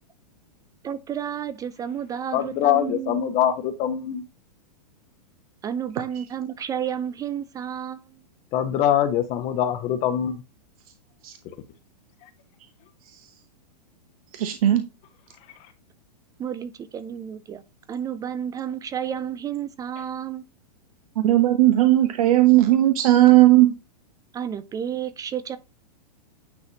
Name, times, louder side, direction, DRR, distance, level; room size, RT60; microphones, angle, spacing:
voice 1, 0.8-3.2 5.6-8.2 16.4-17.6 17.9-20.4 24.3-25.6, right 9 dB, 15° right, 0.4 m, -31 dB
voice 2, 2.3-4.2 8.5-10.4, left 10 dB, 35° left, 1.0 m, -23 dB
voice 3, 14.3-14.8 21.2-23.7, right 15 dB, 60° right, 0.9 m, -16 dB
9.5 x 4.0 x 2.8 m
hypercardioid pair, 110°, 21 cm